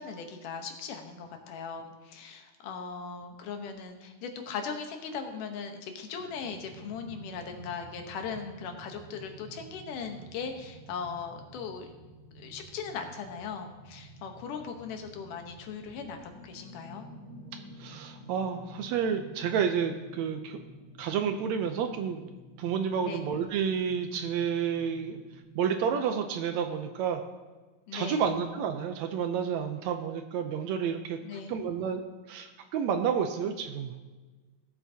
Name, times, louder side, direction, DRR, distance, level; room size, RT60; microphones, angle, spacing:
voice 1, 0.0-11.9 12.4-17.1 23.0-23.2 27.9-28.3 31.2-31.6, left 6 dB, 90° left, 5 dB, 2.7 m, -39 dB
sound 1, 6.2-25.4, right 2 dB, 55° right, 2.8 m, -50 dB
voice 2, 17.8-20.6 21.0-22.2 22.6-25.2 25.6-27.2 27.9-31.2 31.5-32.0 32.3-33.9, right 7 dB, 75° right, 6 dB, 1.7 m, -30 dB
18.0 x 8.2 x 2.8 m, 1.3 s
omnidirectional pair, 3.6 m